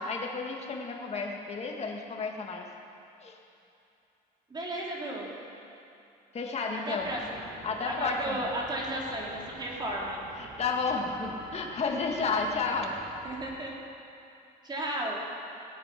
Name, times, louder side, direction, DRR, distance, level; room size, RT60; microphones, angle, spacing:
voice 1, 0.0-2.7 3.2-3.3 6.3-7.1 7.6-8.5 10.4-12.9, left 4 dB, 40° left, 1 dB, 2.0 m, -32 dB
voice 2, 4.5-5.3 6.9-7.5 7.8-10.2 13.2-13.7 14.6-15.2, right 1 dB, 25° right, -3 dB, 3.2 m, -34 dB
sound 1, 7.0-13.6, right 2 dB, 50° right, 3.4 m, -48 dB
18.0 x 8.8 x 6.1 m, 2.7 s
cardioid pair, 110°, 17 cm